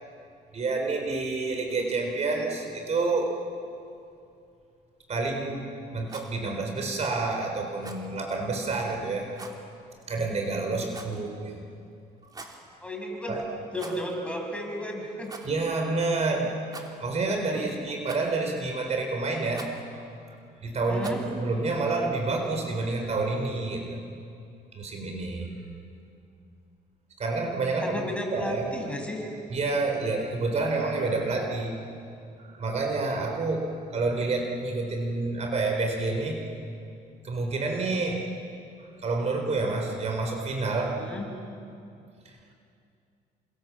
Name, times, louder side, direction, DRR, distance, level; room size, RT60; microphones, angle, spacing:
voice 1, 0.5-3.4 5.1-5.6 5.9-9.3 10.1-11.6 13.3-13.4 15.4-16.5 17.0-20.0 20.6-24.0 24.7-25.5 27.2-28.0 28.3-28.7 29.5-31.7 32.4-36.5 37.2-38.3 39.0-41.0, right 3 dB, 40° right, 3 dB, 4.1 m, -28 dB
Rattle, 6.0-6.4 7.8-8.1 9.3-9.6 10.9-11.3 12.2-12.6 13.7-14.2 14.4-14.5 15.2-15.5 16.7-17.2 18.1-18.5 19.5-19.8 21.0-21.3, right 3 dB, 20° right, 3.3 m, -44 dB
voice 2, 12.8-13.4 13.7-15.3 17.5-17.7 18.0-18.1 20.9-21.2 27.8-29.2 40.9-41.3, left 1 dB, 5° left, 1 dB, 6.6 m, -33 dB
29.5 x 25.0 x 7.6 m, 2.6 s
cardioid pair, 110°, 17 cm